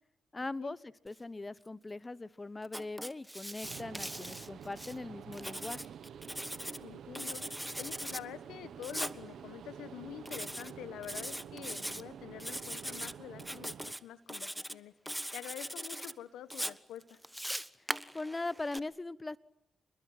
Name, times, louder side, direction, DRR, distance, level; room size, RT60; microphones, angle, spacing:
voice 1, 0.3-5.8 17.8-17.9 18.1-19.4, left 2 dB, 30° left, 18 dB, 1.2 m, -40 dB
Writing, 2.6-4.9 5.3-6.8 7.1-8.2 8.8-9.2 10.3-10.7 11.0-12.0 12.4-13.1 13.4-14.0 14.3-14.8 15.1-16.1 16.5-18.8, equal, 5° right, 1.3 m, -40 dB
sound 1, 3.6-13.9, right 8 dB, 75° right, 1.3 m, -49 dB
voice 2, 6.8-17.2, left 11 dB, 85° left, 14 dB, 1.5 m, -47 dB
27.5 x 21.5 x 9.7 m, 0.84 s
supercardioid pair, 45°, 0 cm